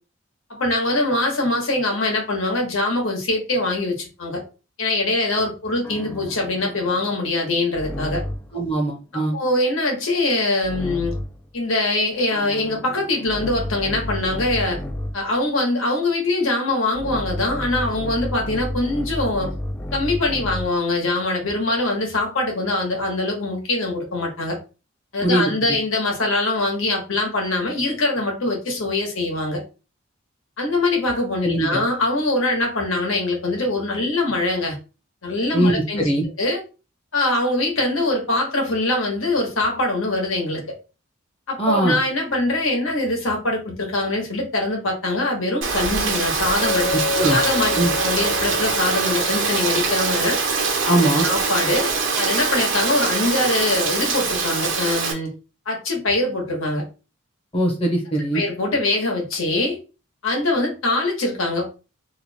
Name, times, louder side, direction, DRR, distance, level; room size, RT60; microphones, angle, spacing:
voice 1, 0.5-4.4 4.8-8.2 9.3-11.1 11.5-14.8 15.1-19.5 19.9-24.6 25.1-29.6 30.6-34.8 35.2-36.1 36.4-36.6 37.1-40.6 41.5-46.9 47.3-47.7 48.0-50.4 51.2-51.9 52.2-55.3 55.6-56.8 58.3-59.8 60.2-61.7, left 2 dB, 85° left, 1.3 m, -23 dB
sound 1, 5.8-8.6 10.6-11.5 12.3-15.3 16.9-20.8, left 1 dB, 10° left, 0.3 m, -31 dB
voice 2, 8.5-9.4 25.2-25.4 31.4-31.8 35.5-36.3 41.6-42.0 47.2-47.4 47.8-47.9 50.8-51.3 57.5-58.4, right 1 dB, 25° left, 0.8 m, -20 dB
Rain, 45.6-55.1, right 4 dB, 70° right, 1.0 m, -23 dB
Chink clink, 46.6-51.0, left 4 dB, 65° left, 0.9 m, -30 dB
3.0 x 2.3 x 4.2 m
head